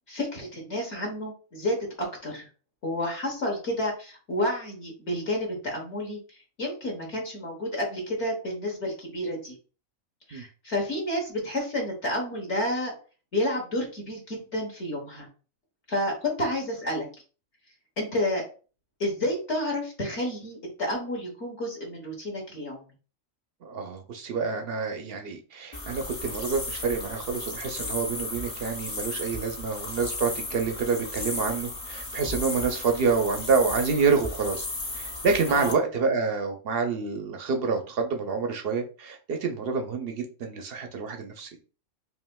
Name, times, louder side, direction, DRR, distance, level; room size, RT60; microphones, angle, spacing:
voice 1, 0.1-2.5 2.8-6.2 6.6-9.5 10.3-12.9 13.3-15.3 15.9-17.1 18.0-18.4 19.0-22.9 35.5-35.8, left 1 dB, 55° left, -1 dB, 1.4 m, -30 dB
voice 2, 23.6-34.7 34.9-41.5, right 5 dB, 60° right, 4 dB, 0.6 m, -27 dB
sound 1, 25.7-35.7, left 2 dB, 35° left, 0.5 m, -35 dB
5.4 x 2.6 x 2.2 m, 0.37 s
omnidirectional pair, 1.4 m